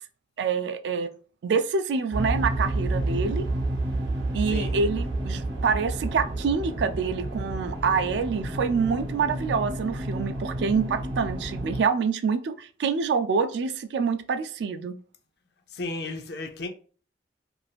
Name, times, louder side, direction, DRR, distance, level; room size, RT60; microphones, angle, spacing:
voice 1, 0.4-1.1 1.4-3.5 4.3-14.9, right 5 dB, 70° right, 0.3 m, -26 dB
sound 1, 2.1-11.8, right 1 dB, 90° right, 0.8 m, -30 dB
voice 2, 15.7-16.7, left 2 dB, 60° left, 0.4 m, -34 dB
2.5 x 2.5 x 3.2 m
head